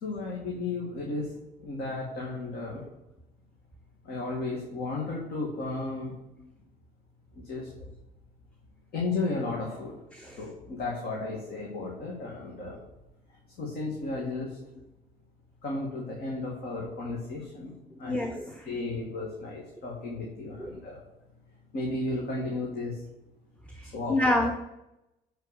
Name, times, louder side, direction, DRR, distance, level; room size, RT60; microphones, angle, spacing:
voice 1, 0.0-1.3 1.6-2.8 4.1-6.1 7.5-7.7 8.9-9.9 10.4-12.8 13.6-14.5 15.6-17.7 18.0-18.3 18.6-21.0 21.7-22.9 23.9-24.2, left 3 dB, 65° left, -2 dB, 2.2 m, -34 dB
voice 2, 18.0-18.7 20.6-20.7 23.7-24.6, left 1 dB, 5° left, 4 dB, 0.8 m, -28 dB
10.5 x 4.6 x 6.7 m, 0.92 s
cardioid pair, 110°, 17 cm